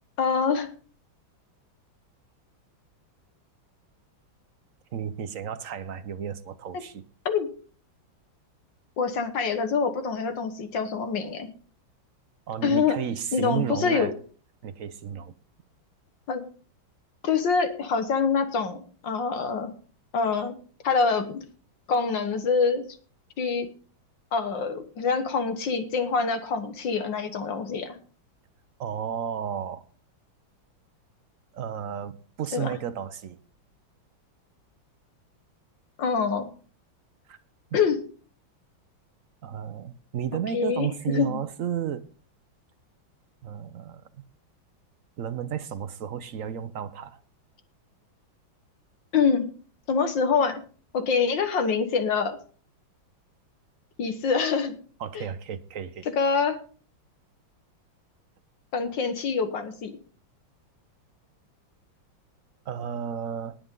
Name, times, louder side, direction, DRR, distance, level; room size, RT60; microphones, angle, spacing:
voice 1, 0.2-0.7 7.3-7.5 9.0-11.5 12.6-13.0 13.3-14.1 16.3-16.4 17.2-19.7 20.1-20.5 20.8-21.4 21.9-22.8 23.4-23.7 24.3-28.0 32.5-32.8 36.0-36.5 37.7-38.0 40.3-41.4 49.1-49.5 49.9-50.6 50.9-52.4 54.0-54.7 55.1-55.3 56.2-56.6 58.7-59.9, left 5 dB, 65° left, 2.0 m, -25 dB
voice 2, 4.9-7.0 12.5-14.1 14.6-15.3 28.8-29.8 31.5-33.4 37.3-37.4 39.4-42.1 43.4-44.0 45.2-47.2 55.0-56.1 62.7-63.6, right 8 dB, 65° right, 0.8 m, -33 dB
19.0 x 7.8 x 3.8 m
omnidirectional pair, 2.2 m